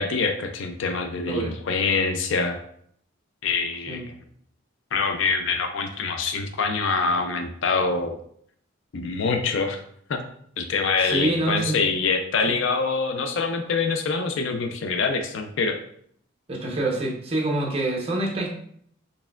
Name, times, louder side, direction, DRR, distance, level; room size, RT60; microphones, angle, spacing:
voice 1, 0.0-2.6 3.4-4.0 4.9-8.2 8.9-9.8 10.1-10.2 10.6-15.8, left 4 dB, 65° left, 7 dB, 0.4 m, -25 dB
voice 2, 11.0-11.8 12.5-12.6 16.5-18.5, right 2 dB, 30° right, 0 dB, 0.7 m, -26 dB
4.2 x 3.4 x 2.3 m, 0.65 s
head